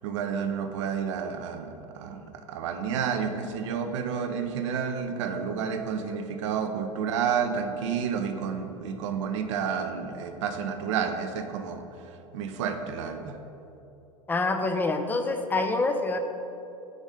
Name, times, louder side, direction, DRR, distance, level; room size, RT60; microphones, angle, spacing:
voice 1, 0.0-2.2 2.5-11.8 12.3-13.3, right 7 dB, 60° right, 6 dB, 0.6 m, -30 dB
voice 2, 14.3-16.2, left 3 dB, 10° left, 6 dB, 0.4 m, -26 dB
5.1 x 4.0 x 5.0 m, 2.9 s
figure-of-eight pair, 80°, 18 cm